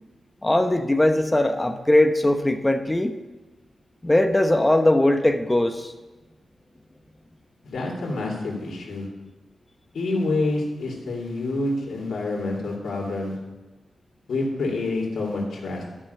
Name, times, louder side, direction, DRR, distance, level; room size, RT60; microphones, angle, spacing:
voice 1, 0.4-3.2 4.0-5.9, left 1 dB, 15° left, 7 dB, 1.0 m, -20 dB
voice 2, 7.6-9.1 9.9-13.4 14.3-15.8, left 2 dB, 75° left, -2 dB, 2.7 m, -27 dB
11.5 x 5.6 x 6.8 m, 1.2 s
cardioid pair, 65°, 0 cm